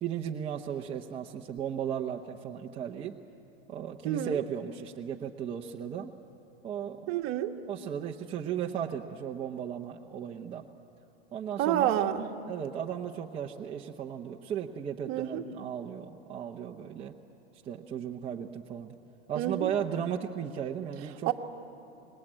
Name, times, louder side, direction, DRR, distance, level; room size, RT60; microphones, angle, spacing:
voice 1, 0.0-3.2 3.7-6.1 6.6-7.2 7.7-10.7 11.3-12.0 12.5-17.1 17.6-19.0 19.3-21.3, right 8 dB, 20° right, 0 dB, 0.8 m, -35 dB
voice 2, 4.0-4.4 7.1-7.5 11.6-12.3 15.1-15.4 19.3-19.7 21.3-21.4, right 12 dB, 40° right, 4 dB, 1.5 m, -28 dB
25.5 x 21.0 x 8.8 m, 2.9 s
supercardioid pair, 150°, 32 cm